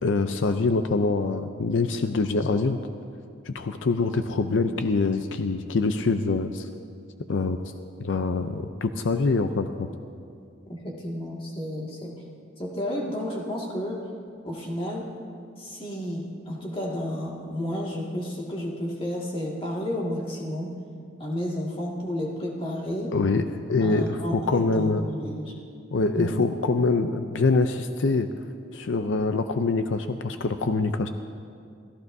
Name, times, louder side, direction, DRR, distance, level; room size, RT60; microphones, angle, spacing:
voice 1, 0.0-2.8 3.5-6.7 7.3-7.6 8.0-9.9 23.1-25.0 25.9-28.3 28.7-31.1, left 3 dB, 75° left, 8 dB, 0.5 m, -24 dB
voice 2, 10.7-12.2 12.6-14.1 14.4-15.1 15.6-20.8 21.2-23.2 23.8-25.5 26.1-26.4, equal, 30° left, -2 dB, 2.0 m, -31 dB
29.0 x 14.5 x 2.7 m, 2.4 s
head